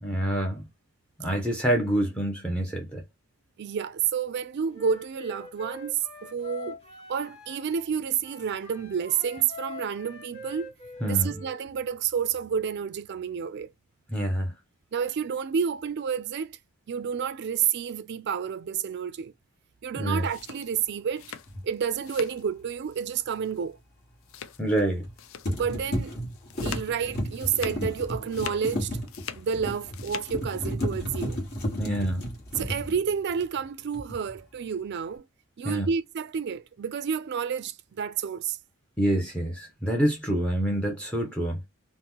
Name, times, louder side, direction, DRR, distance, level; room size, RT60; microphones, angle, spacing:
voice 1, 0.0-0.7 1.2-3.0 11.0-11.4 14.1-14.5 20.0-20.3 24.6-25.1 31.8-32.3 35.6-35.9 39.0-41.6, right 1 dB, 5° left, 0.5 m, -27 dB
voice 2, 3.6-6.8 7.1-10.7 11.0-13.7 14.9-16.6 16.9-19.3 19.8-21.3 21.6-23.8 25.5-26.1 26.6-28.9 29.4-31.4 32.6-35.2 35.6-38.6, right 7 dB, 50° right, 0.3 m, -30 dB
Wind instrument woodwind instrument, 4.7-7.9 8.2-11.6, left 2 dB, 30° left, 1.1 m, -44 dB
sound 1, 20.1-22.5 22.8-23.2 23.4-23.6 24.2-24.8 25.2-25.6 25.9-27.9 28.2-29.5 29.8-30.3, left 8 dB, 70° left, 0.4 m, -42 dB
sound 2, 21.5-21.6 24.8-25.1 25.4-33.6 33.9-34.4, equal, 50° left, 1.2 m, -33 dB
2.8 x 2.0 x 3.4 m
head